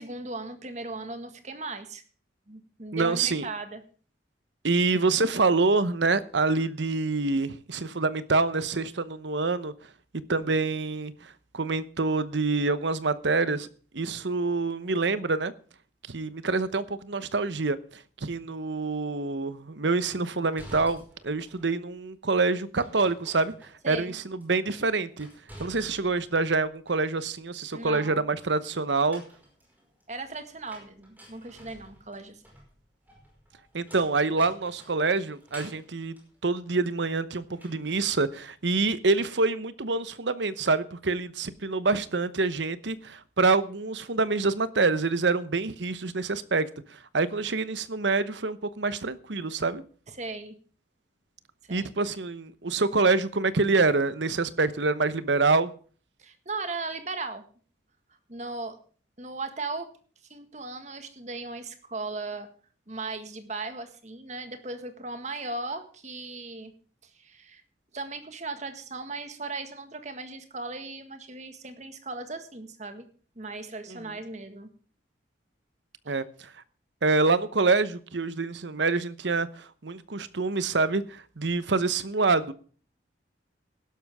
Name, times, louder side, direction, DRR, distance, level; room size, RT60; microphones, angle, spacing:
voice 1, 0.0-2.0 2.5-3.8 23.8-24.2 27.7-28.3 30.1-32.4 50.1-50.5 51.7-51.9 56.2-57.4 58.3-58.8 59.2-59.9 60.3-62.5 62.9-66.7 67.0-67.6 67.9-73.1 73.4-74.7, right 3 dB, 40° right, 1.7 m, -37 dB
voice 2, 2.9-3.5 4.6-9.7 10.3-13.7 13.9-15.5 16.1-23.5 23.9-25.3 25.6-29.2 33.7-36.1 36.4-49.8 51.7-55.7 73.9-74.0 76.1-76.5 77.0-82.5, right 3 dB, 75° right, 1.0 m, -26 dB
sound 1, 20.1-21.8 22.8-24.1 24.4-26.3 26.6-27.4 28.8-37.1 37.5-38.1, equal, 10° right, 5.1 m, -51 dB
16.0 x 12.0 x 3.6 m
head